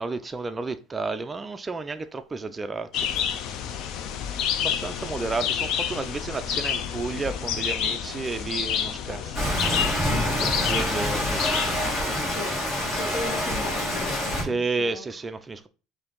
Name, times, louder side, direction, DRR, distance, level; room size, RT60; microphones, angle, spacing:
voice 1, 0.0-3.4 4.6-12.0 14.4-15.7, right 3 dB, 20° right, 0.3 m, -32 dB
sound 1, 2.9-12.0, left 8 dB, 60° left, 0.5 m, -29 dB
Rain, 9.3-14.4, left 1 dB, 35° left, 1.8 m, -26 dB
voice 2, 12.3-12.6 13.0-15.1, left 3 dB, 75° left, 1.2 m, -36 dB
4.4 x 2.6 x 3.7 m
cardioid pair, 120°, 0 cm